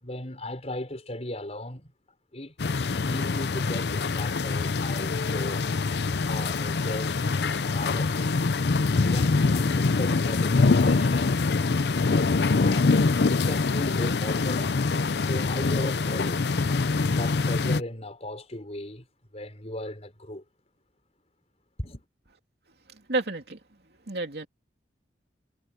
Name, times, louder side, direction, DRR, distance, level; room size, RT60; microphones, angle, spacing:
voice 1, 0.0-1.9 2.3-5.7 6.2-11.4 12.0-14.9 15.3-16.4 17.0-19.1 19.3-20.4 21.8-22.0, left 1 dB, 40° left, 5.8 m, -37 dB
sound 1, 2.6-17.8, left 4 dB, 65° left, 0.6 m, -24 dB
voice 2, 22.9-23.6 24.1-24.5, right 2 dB, 65° right, 3.1 m, -30 dB
head